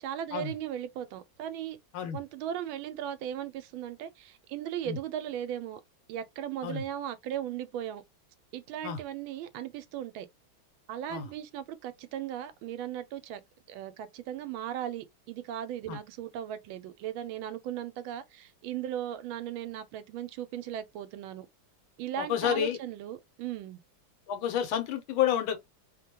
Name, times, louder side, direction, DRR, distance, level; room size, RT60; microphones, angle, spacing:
voice 1, 0.0-1.8 2.1-5.8 6.1-8.0 8.5-10.3 10.9-13.4 13.7-21.5 22.0-23.8, right 10 dB, 80° right, 1.3 m, -37 dB
voice 2, 22.2-22.8 24.3-25.6, left 9 dB, 90° left, 1.5 m, -29 dB
3.4 x 2.2 x 2.8 m
omnidirectional pair, 2.2 m